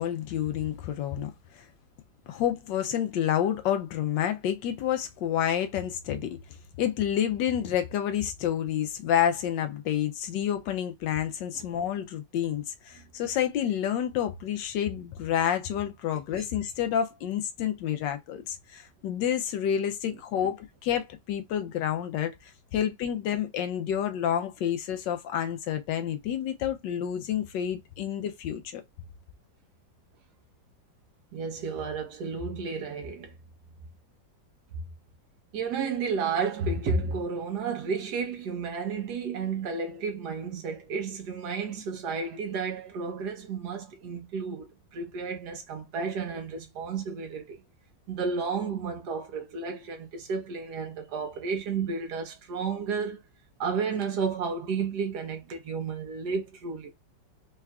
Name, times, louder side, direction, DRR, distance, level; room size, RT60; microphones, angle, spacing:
voice 1, 0.0-1.6 2.3-6.4 6.8-28.8, left 10 dB, 75° left, 1.2 m, -29 dB
voice 2, 31.3-33.3 34.7-34.8 35.5-47.6 48.1-53.2 53.6-56.9, right 5 dB, 65° right, 1.3 m, -32 dB
4.6 x 3.1 x 2.3 m
omnidirectional pair, 2.1 m